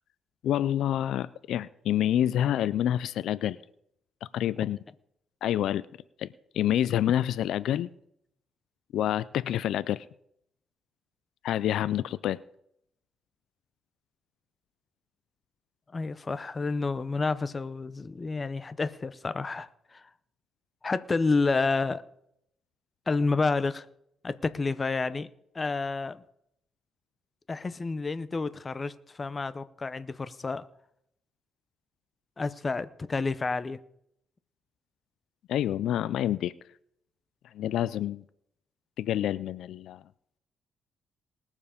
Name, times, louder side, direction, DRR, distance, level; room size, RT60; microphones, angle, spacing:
voice 1, 0.4-3.6 4.3-4.8 5.4-5.9 6.2-6.3 6.5-7.9 8.9-10.1 11.4-12.4 35.5-36.5 37.5-38.2 39.0-40.0, left 11 dB, 75° left, 0.4 m, -27 dB
voice 2, 15.9-20.0 20.8-22.0 23.1-23.9 24.2-25.3 25.5-26.2 27.5-30.7 32.4-33.8, left 3 dB, 25° left, 0.6 m, -29 dB
19.5 x 7.2 x 5.1 m
cardioid pair, 130°, 0 cm